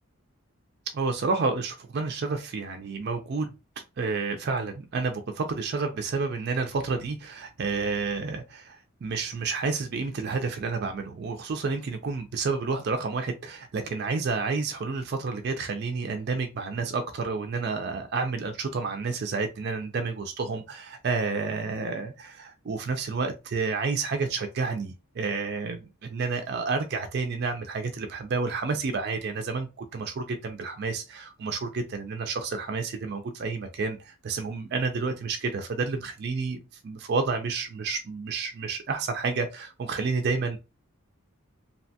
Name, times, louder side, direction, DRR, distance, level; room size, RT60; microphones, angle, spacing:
voice 1, 0.9-3.5 4.0-36.6 36.8-40.6, right 4 dB, 50° right, 0.4 m, -30 dB
2.7 x 2.2 x 2.7 m
head